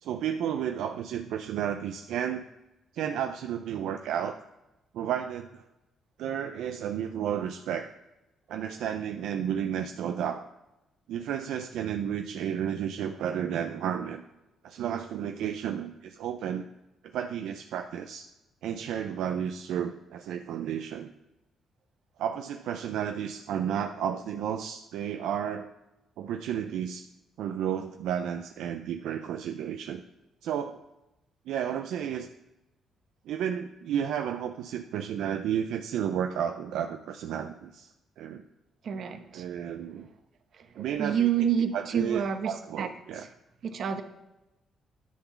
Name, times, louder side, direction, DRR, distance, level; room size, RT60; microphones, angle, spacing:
voice 1, 0.0-2.5 2.9-4.4 4.9-5.6 6.2-7.9 8.5-10.5 11.1-14.2 14.6-16.7 17.1-18.3 18.6-21.1 22.2-25.7 26.2-27.1 27.4-30.0 30.4-30.8 31.5-32.3 33.3-37.9 38.2-38.4 39.3-40.1 40.8-41.3 41.7-43.2, right 9 dB, 80° right, 6 dB, 0.4 m, -32 dB
voice 2, 38.8-39.6 40.0-40.1 40.5-43.3 43.6-44.0, right 8 dB, 60° right, 7 dB, 1.0 m, -30 dB
10.0 x 3.8 x 7.1 m, 0.98 s
cardioid pair, 90°, 0 cm